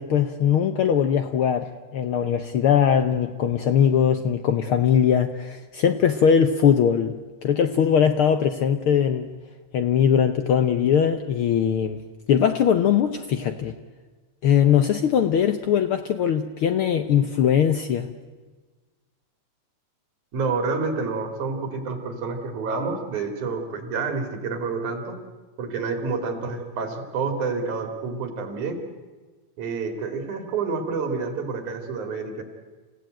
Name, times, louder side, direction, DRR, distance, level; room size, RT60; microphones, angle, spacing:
voice 1, 0.0-7.2 7.4-9.3 9.7-12.0 12.3-13.7 14.4-18.1, left 8 dB, 70° left, 9 dB, 1.3 m, -21 dB
voice 2, 20.3-25.2 25.6-28.8 29.6-32.4, right 4 dB, 90° right, 6 dB, 4.0 m, -28 dB
28.0 x 16.0 x 9.1 m, 1.4 s
omnidirectional pair, 3.3 m